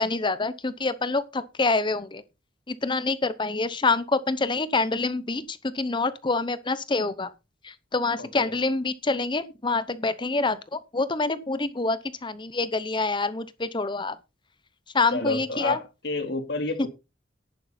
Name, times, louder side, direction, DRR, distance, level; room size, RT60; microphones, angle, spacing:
voice 1, 0.0-2.2 2.7-7.3 7.6-14.2 14.9-15.8, left 3 dB, 25° left, 0.8 m, -26 dB
voice 2, 8.2-8.5 15.1-16.9, left 2 dB, 65° left, 2.4 m, -30 dB
11.0 x 9.9 x 4.3 m
head